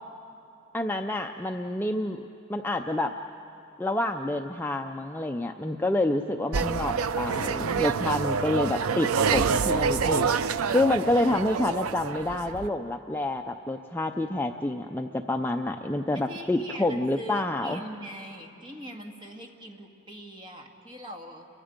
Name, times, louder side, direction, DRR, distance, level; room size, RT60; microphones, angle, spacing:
voice 1, 0.7-2.2 2.5-3.1 3.8-17.8, left 1 dB, 10° left, 4 dB, 0.4 m, -28 dB
sound 1, 6.5-12.7, right 5 dB, 80° right, 0.5 m, -27 dB
voice 2, 16.1-21.5, equal, 25° right, 1 dB, 1.8 m, -42 dB
30.0 x 23.5 x 5.2 m, 2.9 s
head